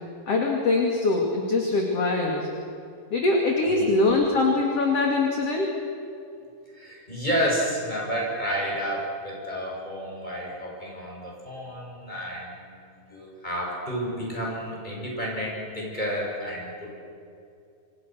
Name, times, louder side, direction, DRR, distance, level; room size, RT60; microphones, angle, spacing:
voice 1, 0.3-2.5 3.1-5.7, left 3 dB, 40° left, 1 dB, 2.7 m, -23 dB
voice 2, 6.7-12.8 13.1-16.9, equal, 10° left, -3 dB, 7.2 m, -30 dB
27.5 x 27.0 x 6.4 m, 2.5 s
omnidirectional pair, 5.4 m